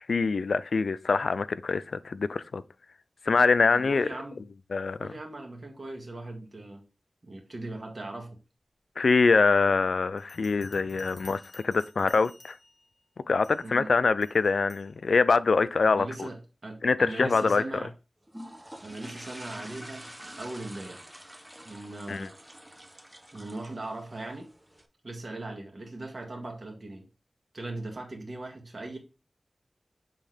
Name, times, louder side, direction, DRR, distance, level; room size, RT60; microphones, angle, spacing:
voice 1, 0.1-2.6 3.2-4.1 4.7-5.1 9.0-12.6 13.3-16.3 16.8-17.6 22.1-22.3, left 4 dB, 90° left, 0.3 m, -24 dB
voice 2, 3.7-4.4 5.0-6.8 7.2-8.4 13.6-13.9 15.8-17.9 18.8-21.0 21.6-22.3 23.3-24.5 25.0-27.1 27.5-29.0, right 2 dB, 55° right, 1.8 m, -39 dB
Bell, 10.2-12.9 13.4-13.7 14.2-14.9, left 2 dB, 40° left, 1.2 m, -54 dB
sound 1, 18.3-24.9, equal, 10° right, 0.8 m, -47 dB
7.7 x 3.6 x 3.4 m
wide cardioid pair, 60°, 0 cm